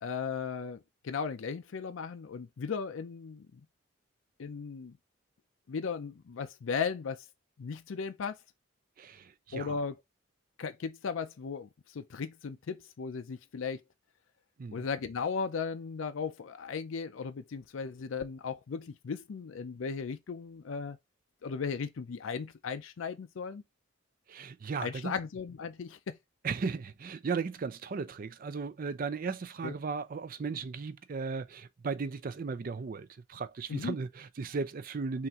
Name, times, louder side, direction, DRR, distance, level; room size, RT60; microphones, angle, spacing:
voice 1, 0.0-3.6 4.4-5.0 5.7-7.2 7.6-8.4 9.5-10.0 10.6-13.8 14.7-21.0 21.4-23.6 24.8-26.2 29.6-29.8 33.7-34.0, left 5 dB, 75° left, 0.4 m, -36 dB
voice 2, 9.0-9.7 14.6-14.8 24.3-25.1 26.4-35.3, right 5 dB, 45° right, 0.4 m, -36 dB
5.7 x 2.5 x 2.9 m
head